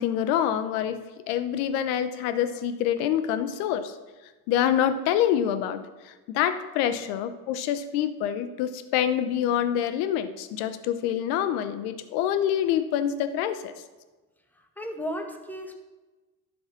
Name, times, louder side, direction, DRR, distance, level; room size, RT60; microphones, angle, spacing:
voice 1, 0.0-3.9 4.5-13.7, left 10 dB, 85° left, 12 dB, 0.8 m, -26 dB
voice 2, 14.8-15.8, equal, 5° left, 3 dB, 1.7 m, -34 dB
11.5 x 6.5 x 5.9 m, 1.2 s
hypercardioid pair, 60°, 44 cm